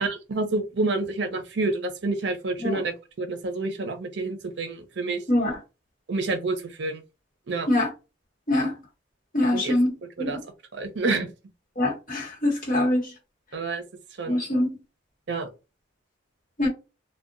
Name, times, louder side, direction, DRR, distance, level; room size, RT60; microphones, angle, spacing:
voice 1, 0.0-5.2 6.1-7.0 7.5-7.7 9.5-9.7 10.2-10.4 10.7-11.3 13.5-13.8 14.2-14.5 15.3-15.5, right 3 dB, 65° right, 0.6 m, -28 dB
voice 2, 5.3-5.6 7.7-7.9 8.5-8.8 9.3-9.9 10.2-10.4 11.8-13.1 14.3-14.8 16.6-16.7, left 1 dB, 45° left, 1.0 m, -24 dB
2.7 x 2.1 x 2.5 m
head